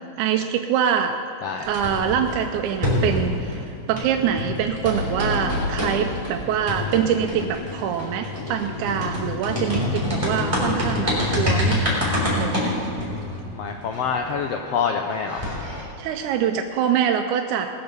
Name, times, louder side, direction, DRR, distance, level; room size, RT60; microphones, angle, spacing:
voice 1, 0.2-1.2 1.7-11.8 12.3-12.7 16.0-17.7, right 8 dB, 80° right, 4 dB, 2.0 m, -24 dB
sound 1, 1.6-3.6 3.9-14.3 14.8-14.9 15.1-15.8, left 1 dB, 10° right, 3.5 m, -26 dB
voice 2, 13.5-15.5, left 6 dB, 85° left, 4 dB, 1.4 m, -26 dB
19.5 x 6.9 x 6.7 m, 2.5 s
omnidirectional pair, 3.6 m